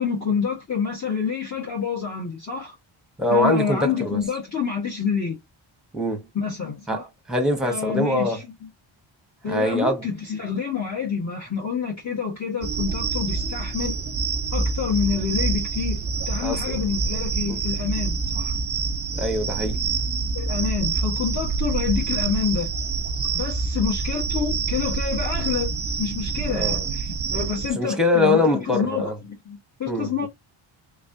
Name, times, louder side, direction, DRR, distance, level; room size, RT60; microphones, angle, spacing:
voice 1, 0.0-2.7 3.3-5.4 6.3-7.0 7.6-8.4 9.4-13.9 14.5-18.5 20.3-22.7 23.3-30.3, left 6 dB, 35° left, 1.4 m, -27 dB
voice 2, 3.2-4.2 5.9-6.2 6.9-8.4 9.5-10.0 16.4-16.8 17.5-17.6 19.1-19.8 26.5-26.9 27.8-29.1 29.9-30.3, left 1 dB, ahead, 1.2 m, -23 dB
sound 1, 12.6-27.7, right 4 dB, 30° right, 0.7 m, -26 dB
3.5 x 3.2 x 2.7 m
wide cardioid pair, 115°, 50 cm